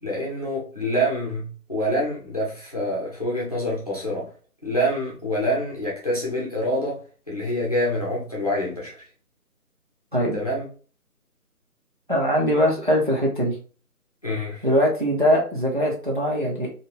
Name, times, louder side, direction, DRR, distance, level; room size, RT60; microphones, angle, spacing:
voice 1, 0.0-4.3 4.6-7.0 7.3-9.0 10.3-10.7 14.2-14.7, equal, 25° left, -5 dB, 0.7 m, -26 dB
voice 2, 12.1-13.6 14.6-16.7, equal, 35° right, -2 dB, 0.6 m, -21 dB
2.8 x 2.8 x 2.8 m, 0.39 s
figure-of-eight pair, 170°, 46 cm